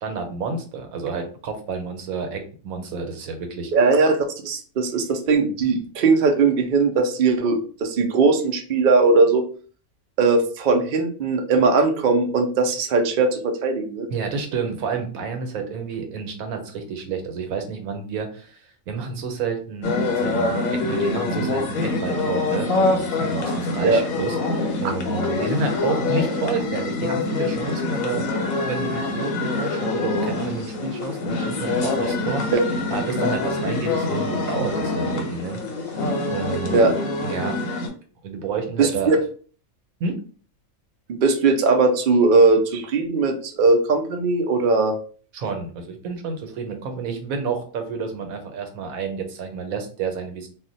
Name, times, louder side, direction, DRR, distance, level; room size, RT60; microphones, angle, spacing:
voice 1, 0.0-3.7 14.1-28.3 28.6-32.4 32.9-36.0 36.3-36.9 37.2-37.6 38.2-39.2 40.0-40.2 45.3-50.5, right 5 dB, 85° right, 5 dB, 1.1 m, -30 dB
voice 2, 3.7-4.2 4.4-9.4 10.2-14.1 23.8-24.0 32.5-32.6 36.7-36.9 38.8-39.2 41.1-45.0, right 3 dB, 65° right, 5 dB, 0.5 m, -19 dB
sound 1, 19.8-37.9, left 2 dB, 75° left, 1.1 m, -25 dB
2.4 x 2.1 x 3.8 m, 0.41 s
omnidirectional pair, 1.5 m